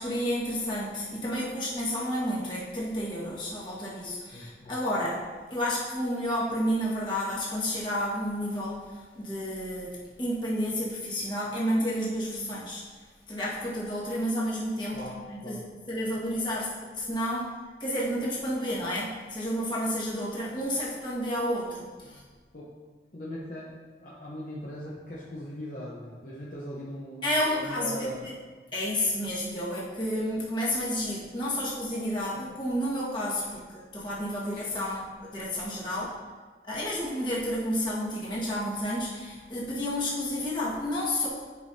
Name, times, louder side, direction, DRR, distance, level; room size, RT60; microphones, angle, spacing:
voice 1, 0.0-12.8 13.3-15.0 15.3-16.7 16.9-17.5 17.8-22.2 27.2-28.3 28.7-36.1 36.7-41.3, equal, 25° left, -7 dB, 1.6 m, -31 dB
voice 2, 4.3-4.7 14.9-15.6 22.5-22.7 23.1-28.3, equal, 50° left, -6 dB, 0.9 m, -40 dB
9.2 x 5.3 x 2.7 m, 1.5 s
head